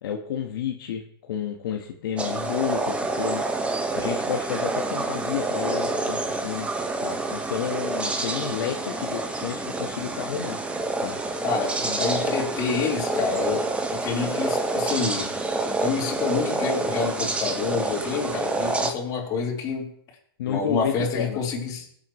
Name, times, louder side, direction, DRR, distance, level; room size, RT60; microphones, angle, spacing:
voice 1, 0.0-3.5 3.9-6.7 7.0-10.6 11.0-11.2 11.8-12.3 20.4-21.4, left 9 dB, 65° left, 1 dB, 1.4 m, -31 dB
sound 1, 2.2-18.9, right 2 dB, 10° right, 1.4 m, -28 dB
voice 2, 11.4-15.3 15.8-19.9 20.5-21.8, left 5 dB, 30° left, -2 dB, 4.0 m, -28 dB
18.0 x 8.2 x 3.2 m, 0.63 s
hypercardioid pair, 130°, 13 cm